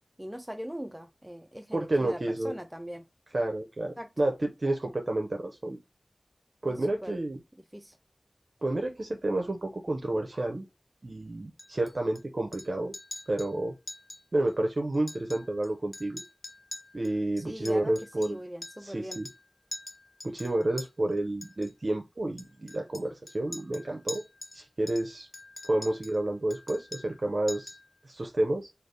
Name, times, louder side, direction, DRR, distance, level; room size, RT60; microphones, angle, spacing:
voice 1, 0.2-3.0 4.0-4.1 6.6-7.2 7.7-8.0 17.4-19.2 21.0-21.1, equal, 10° right, 0.4 m, -41 dB
voice 2, 1.7-2.6 3.3-5.8 6.6-7.4 8.6-10.6 11.0-12.9 13.3-13.7 14.3-16.2 16.9-18.4 18.8-19.3 20.2-24.2 24.5-25.3 25.6-27.7 28.0-28.7, right 1 dB, 60° right, 0.6 m, -30 dB
Chink clink, 11.6-12.2 12.5-12.7 12.9-13.5 13.9-14.2 14.5-14.6 14.9-15.7 15.9-18.9 19.1-19.4 19.7-20.9 21.4-21.7 22.4-24.6 24.9-26.2 26.5-27.2 27.5-27.9, left 2 dB, 60° left, 0.5 m, -44 dB
3.3 x 2.4 x 3.7 m
wide cardioid pair, 50°, 0 cm